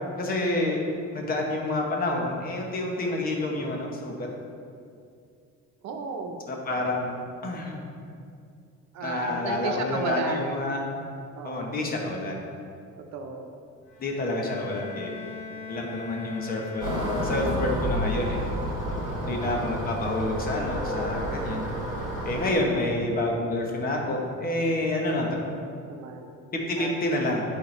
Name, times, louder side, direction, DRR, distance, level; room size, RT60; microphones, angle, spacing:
voice 1, 0.1-0.8 1.1-4.3 6.5-7.1 7.4-7.8 9.0-10.8 11.4-12.4 14.0-15.1 15.7-16.9 17.2-18.4 19.2-21.7 22.2-25.3 26.5-27.4, left 1 dB, 30° left, 0 dB, 0.9 m, -28 dB
voice 2, 5.8-6.4 8.9-10.4 11.4-11.8 13.1-13.5 19.1-19.8 25.9-26.3 26.8-26.9, right 4 dB, 65° right, 3 dB, 0.9 m, -34 dB
Bowed string instrument, 13.9-18.0, left 5 dB, 45° left, 1.6 m, -41 dB
sound 1, 16.8-22.5, equal, 15° right, 1.8 m, -30 dB
11.0 x 4.4 x 3.2 m, 2.4 s
cardioid pair, 170°, 30 cm